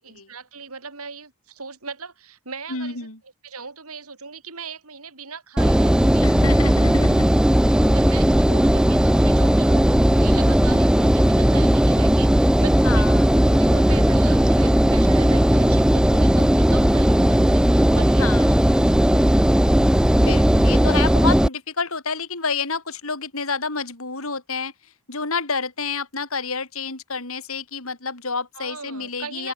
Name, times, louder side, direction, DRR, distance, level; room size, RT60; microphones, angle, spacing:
voice 1, 0.0-3.1 3.4-6.3 7.2-19.5 28.5-29.5, right 5 dB, 75° right, 4.5 m, -39 dB
voice 2, 2.7-3.2 6.2-7.3 10.7-10.8 12.8-13.3 18.2-18.5 20.1-29.5, left 4 dB, 65° left, 4.8 m, -29 dB
Engine, 5.6-21.5, equal, 5° right, 0.4 m, -17 dB
open air
head